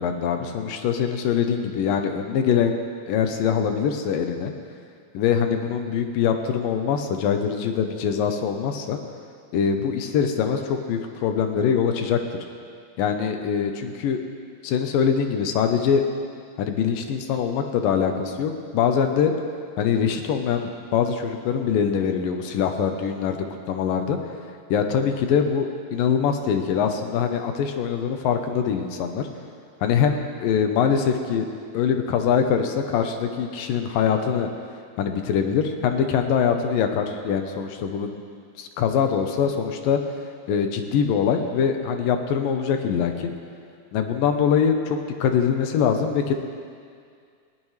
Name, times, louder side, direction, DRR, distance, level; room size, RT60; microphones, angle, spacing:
voice 1, 0.0-2.8 3.1-4.5 5.1-9.0 9.5-12.2 13.0-14.2 14.6-16.0 16.6-19.3 19.8-24.2 24.7-29.3 29.8-31.5 31.7-34.5 35.0-38.1 38.6-40.0 40.5-43.3 43.9-46.3, left 7 dB, 80° left, 6 dB, 2.6 m, -23 dB
19.5 x 16.5 x 3.3 m, 2.2 s
omnidirectional pair, 3.9 m